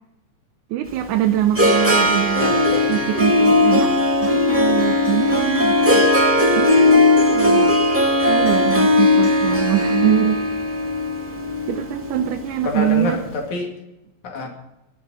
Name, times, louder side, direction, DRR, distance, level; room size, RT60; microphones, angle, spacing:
voice 1, 0.7-2.6 2.9-6.1 6.6-7.8 8.3-10.5 11.7-13.2, right 11 dB, 90° right, 5 dB, 2.3 m, -23 dB
Harp, 0.9-13.0, left 2 dB, 5° right, 2.1 m, -18 dB
voice 2, 2.4-3.1 12.7-13.7 14.2-14.5, left 3 dB, 80° left, 2 dB, 3.9 m, -27 dB
19.5 x 12.0 x 5.5 m, 0.91 s
omnidirectional pair, 3.3 m